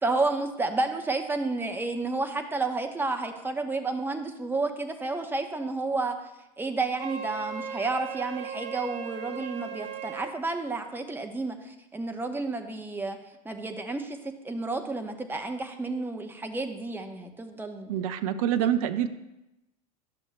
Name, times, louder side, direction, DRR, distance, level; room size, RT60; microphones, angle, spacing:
voice 1, 0.0-6.2 6.6-11.6 11.9-13.2 13.4-14.2 14.4-17.9 18.6-18.7, right 3 dB, 10° right, 5 dB, 0.9 m, -31 dB
Wind instrument woodwind instrument, 7.0-10.3, right 7 dB, 35° right, 1.0 m, -37 dB
voice 2, 17.9-19.1, right 10 dB, 55° right, 10 dB, 0.6 m, -26 dB
12.0 x 6.3 x 2.2 m, 0.92 s
figure-of-eight pair, 80°, 21 cm